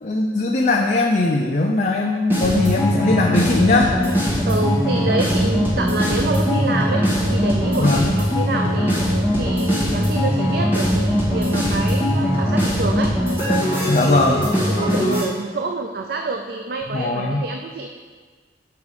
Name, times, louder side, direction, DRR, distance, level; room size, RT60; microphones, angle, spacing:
voice 1, 0.0-3.9 7.8-8.1 13.9-14.5 16.9-17.4, left 2 dB, 40° left, 0 dB, 0.5 m, -19 dB
sound 1, 2.3-15.2, equal, 10° right, 1.7 m, -20 dB
voice 2, 4.5-13.1 14.0-17.9, right 3 dB, 55° right, 4 dB, 0.4 m, -27 dB
6.9 x 5.0 x 4.8 m, 1.5 s
head